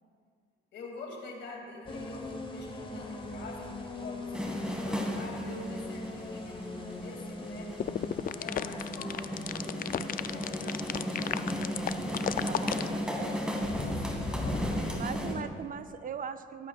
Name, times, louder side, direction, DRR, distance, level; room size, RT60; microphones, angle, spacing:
voice 1, 0.7-6.7 7.0-8.0 8.4-11.8 14.0-15.1, left 3 dB, 65° left, 0 dB, 2.5 m, -46 dB
sound 1, 1.9-15.4, left 2 dB, 25° left, 1.2 m, -40 dB
sound 2, 4.3-15.3, equal, 5° right, 1.7 m, -35 dB
sound 3, 7.8-12.9, left 9 dB, 45° left, 0.4 m, -33 dB
voice 2, 12.5-13.3 15.0-16.7, right 7 dB, 45° right, 11 dB, 0.5 m, -40 dB
21.0 x 8.5 x 2.4 m, 2.1 s
cardioid pair, 90°, 20 cm